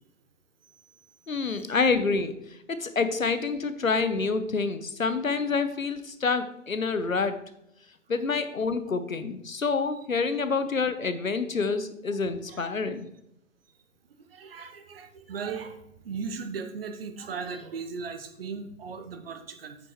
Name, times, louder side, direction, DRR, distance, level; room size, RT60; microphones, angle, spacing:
voice 1, 1.3-2.4 2.7-7.4 8.1-13.1, left 4 dB, 85° left, 10 dB, 1.0 m, -27 dB
voice 2, 14.3-15.8 16.0-19.8, right 5 dB, 45° right, 6 dB, 1.1 m, -37 dB
9.3 x 6.9 x 3.1 m, 0.79 s
figure-of-eight pair, 130°, 39 cm